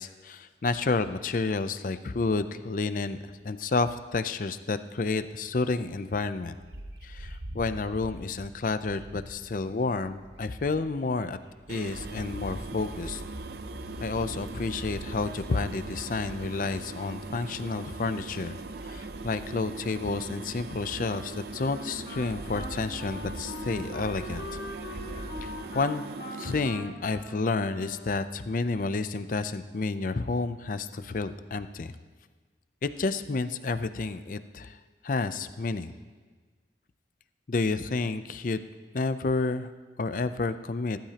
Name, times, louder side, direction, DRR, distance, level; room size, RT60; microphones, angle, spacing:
voice 1, 0.0-6.6 7.0-11.4 11.7-13.2 14.0-18.6 18.8-24.5 25.4-26.0 26.4-31.9 32.8-34.8 35.0-35.9 37.5-38.6 38.9-39.7 40.0-41.0, left 3 dB, 50° left, 12 dB, 0.5 m, -30 dB
Bird, 6.6-11.1 11.5-25.7, equal, 90° right, 1.4 m, -44 dB
sound 1, 11.7-26.7, right 3 dB, 60° right, 0.5 m, -41 dB
Wind instrument woodwind instrument, 21.1-28.5, left 1 dB, 85° left, 2.7 m, -43 dB
19.5 x 12.0 x 2.9 m, 1.4 s
head